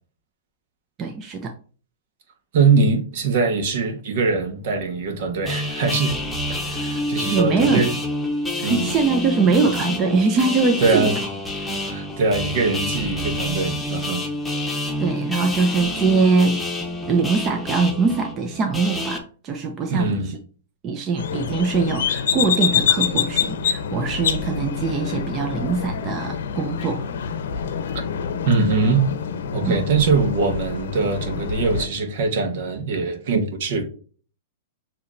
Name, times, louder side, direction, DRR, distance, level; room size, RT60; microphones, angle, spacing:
voice 1, 1.0-1.5 7.2-7.9 8.6-11.1 15.0-16.6 17.1-20.4 20.8-27.0 29.6-29.8, right 4 dB, 30° right, 0.7 m, -22 dB
voice 2, 2.5-6.2 6.5-7.9 8.6-8.9 10.8-11.2 11.7-14.3 19.9-20.3 28.4-29.1 29.5-33.8, right 4 dB, 60° right, 1.4 m, -22 dB
sound 1, 5.5-19.2, left 1 dB, 5° left, 1.1 m, -28 dB
sound 2, 21.2-31.9, left 7 dB, 75° left, 0.7 m, -26 dB
6.9 x 2.9 x 2.7 m
hypercardioid pair, 135°, 0 cm